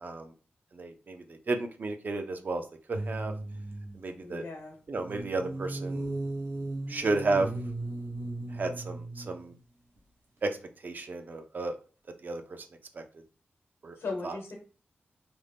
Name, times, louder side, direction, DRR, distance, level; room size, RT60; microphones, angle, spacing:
voice 1, 0.0-0.3 0.7-3.3 3.9-4.4 4.9-6.1 6.9-7.5 8.5-9.5 10.4-10.6 10.8-11.8 12.2-12.6 12.9-13.0 13.8-14.0 14.2-14.4, right 3 dB, 45° right, 6 dB, 0.4 m, -32 dB
sound 1, 2.9-4.0 5.0-9.6 10.0-10.1, right 2 dB, 80° right, 0.8 m, -36 dB
voice 2, 4.2-4.8 14.0-14.6, left 3 dB, 90° left, 1 dB, 1.0 m, -37 dB
2.5 x 2.0 x 3.3 m, 0.37 s
wide cardioid pair, 120°, 4 cm